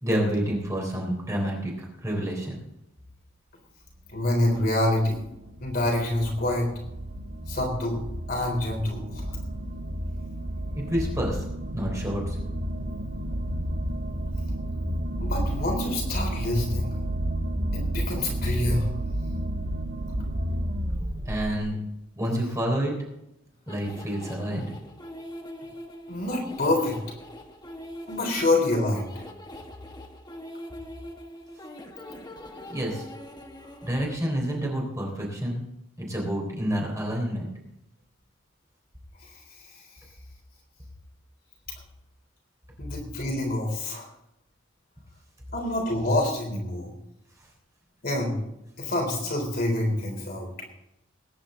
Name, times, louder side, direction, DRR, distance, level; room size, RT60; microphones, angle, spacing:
voice 1, 0.0-1.7 2.0-2.5 10.7-11.4 11.7-12.4 21.3-21.8 22.2-22.9 23.7-24.7 32.7-33.1 33.8-35.6 36.0-37.5, equal, 15° right, -1 dB, 3.6 m, -28 dB
voice 2, 4.1-5.2 5.6-6.7 7.5-8.0 8.3-9.4 15.2-16.9 17.7-18.9 26.1-27.0 28.1-29.1 39.2-39.9 42.8-44.1 45.5-46.9 48.0-48.4 48.8-50.5, left 1 dB, 50° left, 0 dB, 3.8 m, -27 dB
sound 1, 4.1-21.6, right 1 dB, 70° right, 1.7 m, -31 dB
sound 2, 23.7-34.2, left 1 dB, 20° left, 1.3 m, -43 dB
20.5 x 10.0 x 3.8 m, 0.85 s
head